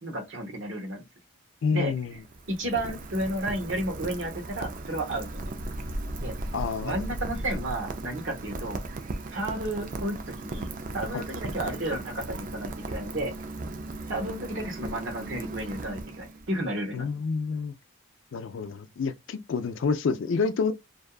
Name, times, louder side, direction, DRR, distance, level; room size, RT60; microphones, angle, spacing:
voice 1, 0.0-1.0 1.7-1.9 2.5-5.6 6.2-6.5 6.8-8.8 9.3-13.3 14.1-17.1, right 1 dB, 65° right, 1.1 m, -32 dB
voice 2, 1.6-2.1 6.5-7.0 11.1-11.2 16.9-17.7 18.3-20.7, left 5 dB, 65° left, 0.4 m, -28 dB
Rain, 1.9-16.6, right 2 dB, 40° right, 0.4 m, -37 dB
2.6 x 2.3 x 2.3 m
head